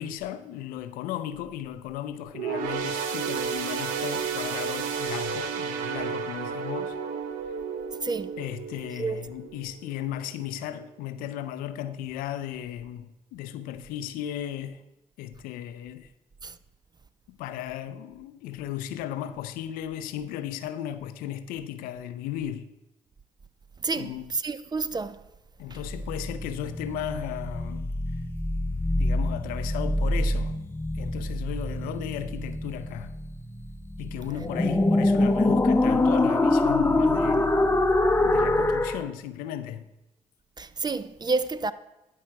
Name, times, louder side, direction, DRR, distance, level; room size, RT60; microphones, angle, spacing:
voice 1, 0.0-7.0 8.4-14.8 15.2-16.1 17.3-22.7 23.9-24.3 25.6-27.9 29.0-30.6 30.9-33.1 34.0-37.8 38.2-39.9, left 11 dB, 85° left, 0.5 m, -35 dB
sound 1, 2.3-10.0 10.4-10.6 11.5-11.6, right 6 dB, 90° right, 0.7 m, -32 dB
voice 2, 23.8-25.2 40.6-41.7, right 4 dB, 30° right, 0.5 m, -29 dB
sound 2, 25.8-39.0, left 2 dB, 15° left, 0.8 m, -25 dB
11.0 x 5.7 x 4.6 m
supercardioid pair, 50°, 14 cm